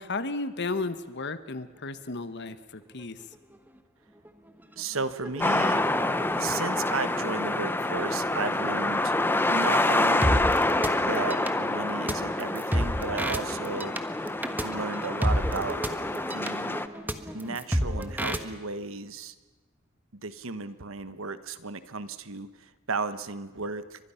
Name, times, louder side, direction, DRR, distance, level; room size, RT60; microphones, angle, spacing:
voice 1, 0.0-3.2, left 3 dB, 55° left, 11 dB, 1.3 m, -33 dB
sound 1, 3.0-3.1 3.3-3.8 4.2-18.4, equal, 10° right, 1.3 m, -33 dB
voice 2, 4.7-5.8 6.4-9.1 9.5-10.5 11.0-13.9 14.6-15.8 16.2-16.8 17.3-19.3 20.1-24.1, right 4 dB, 70° right, 12 dB, 1.3 m, -34 dB
sound 2, 5.4-16.9, left 2 dB, 10° left, 0.9 m, -27 dB
30.0 x 24.5 x 5.8 m, 1.2 s
head